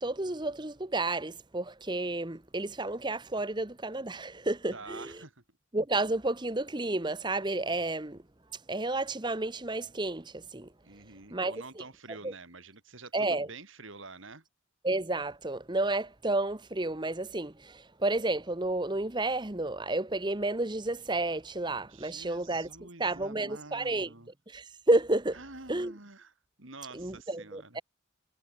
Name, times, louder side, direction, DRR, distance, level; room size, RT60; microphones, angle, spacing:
voice 1, 0.0-5.1 5.7-8.2 8.7-10.7 11.3-11.6 12.2-12.3 13.1-13.5 14.8-22.7 23.0-24.1 24.5-25.4 25.7-25.9 26.9-27.8, right 2 dB, 20° right, 1.0 m, -31 dB
voice 2, 4.7-5.4 10.8-14.4 21.9-24.3 25.3-27.8, right 3 dB, 65° right, 3.6 m, -48 dB
head